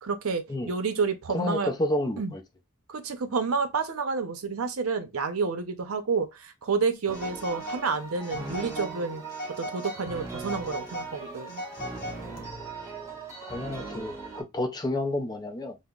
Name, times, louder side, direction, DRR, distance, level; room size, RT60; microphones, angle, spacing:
voice 1, 0.0-1.7 2.2-2.3 2.9-9.2 9.6-11.6, right 5 dB, 75° right, 0.6 m, -29 dB
voice 2, 1.3-2.4 13.5-15.8, left 1 dB, 20° left, 0.4 m, -30 dB
Telephone, 7.1-7.8 8.2-8.9 9.3-10.0 10.4-12.4, left 1 dB, 45° left, 0.8 m, -38 dB
sound 1, 7.1-14.4, right 4 dB, 15° right, 1.3 m, -39 dB
5.4 x 2.0 x 2.3 m
head